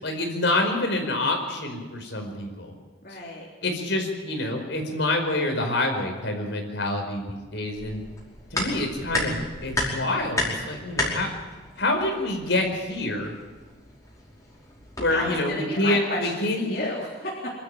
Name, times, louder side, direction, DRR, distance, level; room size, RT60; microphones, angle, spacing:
voice 1, 0.0-2.7 3.6-8.0 8.5-11.3 11.8-13.3 15.0-16.8, left 2 dB, 65° left, 4 dB, 5.0 m, -27 dB
voice 2, 3.0-3.4 15.1-17.5, left 2 dB, 50° left, -5 dB, 3.9 m, -32 dB
sound 1, 7.7-15.4, left 1 dB, 15° left, 5.2 m, -33 dB
26.0 x 13.0 x 9.1 m, 1.3 s
head